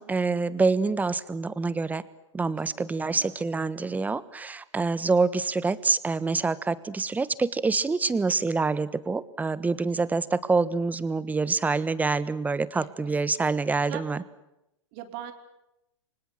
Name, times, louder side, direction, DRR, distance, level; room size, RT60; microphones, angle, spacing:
voice 1, 0.0-2.0 2.3-14.2, right 4 dB, 10° right, 17 dB, 1.3 m, -26 dB
voice 2, 2.6-3.3 9.9-10.0 12.7-14.3 14.9-15.3, right 11 dB, 45° right, 6 dB, 4.5 m, -43 dB
29.5 x 25.0 x 7.5 m, 0.88 s
hypercardioid pair, 110°, 16 cm